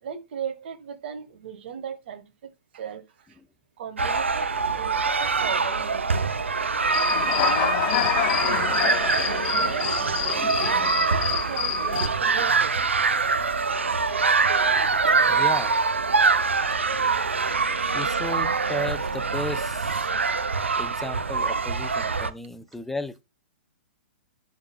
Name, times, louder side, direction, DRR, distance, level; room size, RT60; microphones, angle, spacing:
voice 1, 0.0-3.4 3.8-6.3 6.9-10.7 11.1-12.8, right 7 dB, 60° right, 1.6 m, -37 dB
sound 1, 4.0-22.3, right 4 dB, 90° right, 0.7 m, -24 dB
Human voice / Cricket, 6.9-12.1, left 13 dB, 45° left, 0.8 m, -27 dB
voice 2, 15.3-15.7 17.9-20.1 20.8-23.2, left 2 dB, 5° left, 0.6 m, -34 dB
11.5 x 4.1 x 2.4 m
hypercardioid pair, 120°, 6 cm